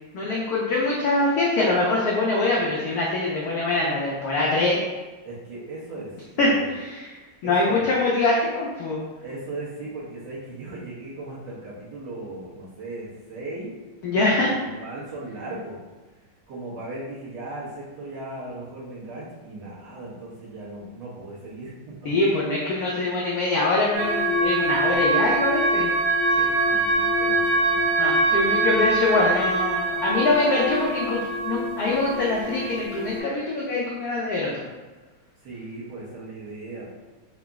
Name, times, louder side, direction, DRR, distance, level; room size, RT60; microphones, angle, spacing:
voice 1, 0.1-4.8 6.4-7.1 7.4-9.0 14.0-14.5 22.0-25.9 26.4-26.5 28.0-34.6, left 2 dB, 85° left, -4 dB, 0.8 m, -23 dB
voice 2, 5.2-6.7 7.4-7.8 9.2-13.7 14.3-15.8 16.5-22.1 26.6-27.9 28.3-28.8 35.4-36.8, right 2 dB, 60° right, -7 dB, 1.4 m, -37 dB
sound 1, 23.9-33.2, right 2 dB, 35° right, 0.5 m, -24 dB
3.8 x 2.0 x 3.4 m, 1.2 s
omnidirectional pair, 2.3 m